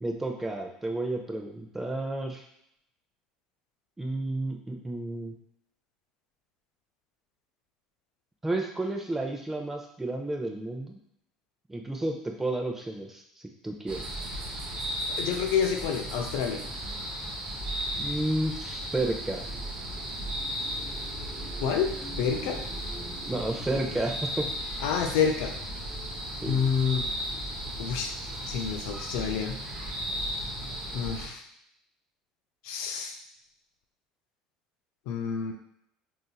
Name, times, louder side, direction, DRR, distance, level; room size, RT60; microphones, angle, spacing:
voice 1, 0.0-2.4 4.0-5.3 8.4-11.0 11.7-13.2 13.6-14.1 18.0-19.5 23.3-24.5 26.4-26.6, right 2 dB, 10° right, 2 dB, 0.6 m, -31 dB
sound 1, 13.9-31.3, equal, 35° right, 0.9 m, -35 dB
voice 2, 15.1-16.6 21.6-21.9 22.2-22.6 24.8-25.5 26.4-27.1 27.8-28.1 28.5-29.6 30.9-31.4 32.6-33.1 35.1-35.5, left 7 dB, 70° left, 4 dB, 0.4 m, -28 dB
3.8 x 2.5 x 2.3 m, 0.73 s
hypercardioid pair, 75°, 3 cm